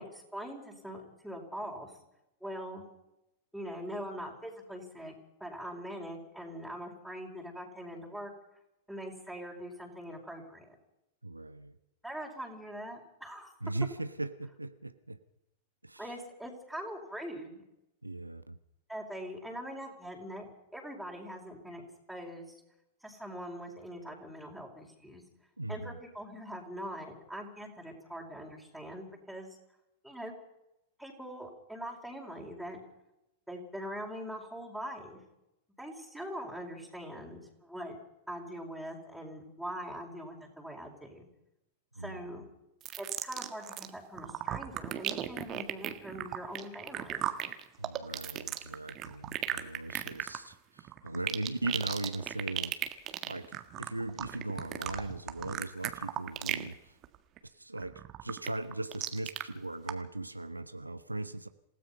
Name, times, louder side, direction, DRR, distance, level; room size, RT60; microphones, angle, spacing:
voice 1, 0.0-1.9 2.4-2.9 3.5-5.1 5.4-8.3 8.9-10.7 12.0-13.5 16.0-17.6 18.9-21.8 22.1-22.5 23.0-25.2 25.7-29.6 30.0-30.3 31.0-32.8 33.5-35.2 35.8-38.0 38.3-41.3 42.0-42.4 43.0-47.3, equal, ahead, -1 dB, 4.8 m, -42 dB
voice 2, 11.2-11.8 13.6-15.2 15.8-16.1 18.0-18.6 25.6-26.0 42.0-42.5 47.8-52.8 53.2-57.0 57.4-61.5, right 2 dB, 90° right, 11 dB, 0.9 m, -39 dB
sound 1, 42.8-43.9 44.2-56.7 57.0-57.4 57.8-59.4 59.9-60.0, right 12 dB, 35° right, 1.6 m, -36 dB
27.5 x 17.0 x 5.6 m, 0.87 s
figure-of-eight pair, 95°, 0 cm